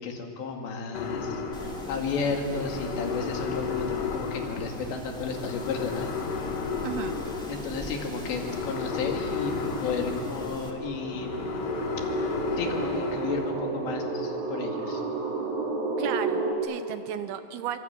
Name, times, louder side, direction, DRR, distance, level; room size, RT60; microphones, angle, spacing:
voice 1, 0.0-6.5 7.5-9.5 9.8-11.6 12.5-15.0, left 5 dB, 80° left, 2 dB, 4.6 m, -33 dB
sound 1, 0.9-13.5, left 5 dB, 55° left, 2.9 m, -33 dB
Wind, 1.5-10.7, equal, ahead, 1.4 m, -42 dB
sound 2, 5.2-5.3 5.7-16.5, right 3 dB, 50° right, 3.8 m, -33 dB
voice 2, 6.8-7.2 16.0-17.8, right 11 dB, 80° right, 10 dB, 2.4 m, -34 dB
25.0 x 24.5 x 8.9 m, 2.7 s
omnidirectional pair, 5.0 m